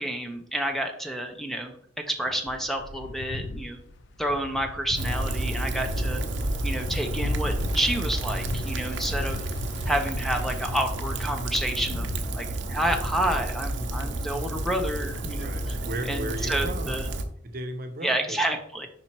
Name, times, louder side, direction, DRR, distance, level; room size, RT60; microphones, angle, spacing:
voice 1, 0.0-1.7 2.1-3.8 4.2-6.2 6.6-9.4 9.9-12.1 12.3-15.5 16.1-17.1 18.0-18.9, right 1 dB, ahead, 4 dB, 0.6 m, -29 dB
sound 1, 2.5-12.2, left 3 dB, 75° left, 0.5 m, -37 dB
Rain, 5.0-17.2, right 1 dB, 90° right, 0.7 m, -30 dB
voice 2, 5.9-6.2 8.8-9.3 15.3-17.1 17.4-18.4, right 1 dB, 55° right, 6 dB, 0.8 m, -36 dB
5.3 x 4.3 x 4.4 m, 0.65 s
head